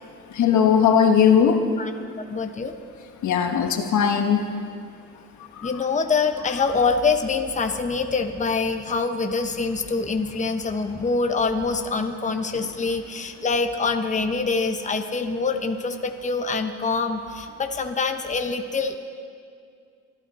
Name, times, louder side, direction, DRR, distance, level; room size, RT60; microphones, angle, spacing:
voice 1, 0.3-1.6 3.2-4.5 5.6-5.7, left 7 dB, 70° left, 5 dB, 1.4 m, -18 dB
voice 2, 2.3-2.7 5.6-19.0, left 4 dB, 25° left, 5 dB, 1.0 m, -25 dB
24.5 x 12.5 x 4.3 m, 2.2 s
cardioid pair, 90°, 30 cm